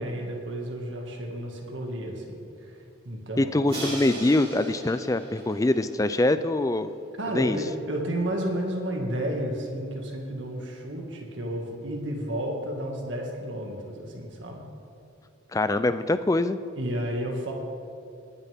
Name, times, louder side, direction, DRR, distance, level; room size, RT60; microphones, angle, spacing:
voice 1, 0.0-2.8 3.0-3.7 7.2-14.6 16.8-17.5, right 1 dB, 65° right, 0 dB, 2.0 m, -32 dB
voice 2, 3.4-6.9 7.3-7.6 15.5-16.6, left 2 dB, 15° left, 12 dB, 0.3 m, -24 dB
Crash cymbal, 3.7-6.6, right 1 dB, 25° right, 3.2 m, -38 dB
19.5 x 9.8 x 3.6 m, 2.6 s
head